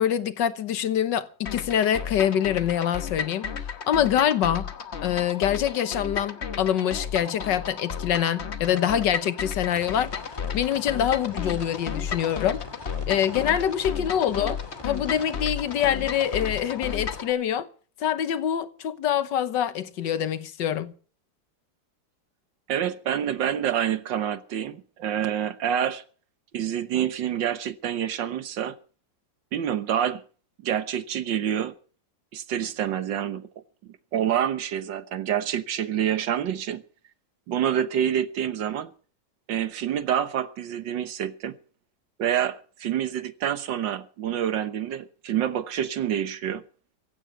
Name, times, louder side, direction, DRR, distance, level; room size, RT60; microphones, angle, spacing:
voice 1, 0.0-3.5 3.9-4.7 5.0-10.1 10.5-12.6 13.1-14.6 14.8-17.7 18.0-20.9, left 9 dB, 75° left, 1.6 m, -25 dB
sound 1, 1.5-17.3, left 7 dB, 45° left, 1.2 m, -33 dB
sound 2, 9.6-17.2, left 1 dB, 15° left, 2.8 m, -44 dB
voice 2, 22.7-26.0 26.5-28.8 29.5-30.2 30.6-31.7 32.3-33.5 34.1-36.8 37.5-38.9 39.5-41.6 42.2-46.6, right 9 dB, 85° right, 1.8 m, -27 dB
15.5 x 9.1 x 7.9 m
omnidirectional pair, 1.9 m